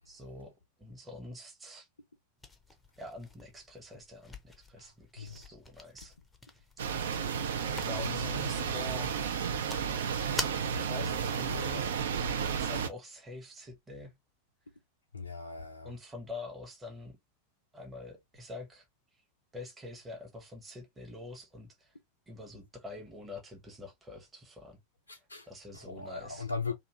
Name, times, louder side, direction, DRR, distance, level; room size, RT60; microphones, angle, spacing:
voice 1, 0.0-1.9 3.0-6.1 6.5-6.8 7.8-9.2 10.8-12.1 12.5-14.1 15.8-17.2 17.7-18.8 19.1-19.2 19.5-21.9 22.3-24.8 25.5-26.5, left 1 dB, 15° right, 0.9 m, -45 dB
sound 1, 2.4-12.3, left 2 dB, 10° left, 0.6 m, -46 dB
sound 2, 6.8-12.9, right 6 dB, 60° right, 0.5 m, -32 dB
voice 2, 8.2-8.5 15.1-15.9 25.1-25.5 25.7-26.7, left 4 dB, 75° left, 0.4 m, -39 dB
2.6 x 2.5 x 2.9 m
figure-of-eight pair, 90°, 0 cm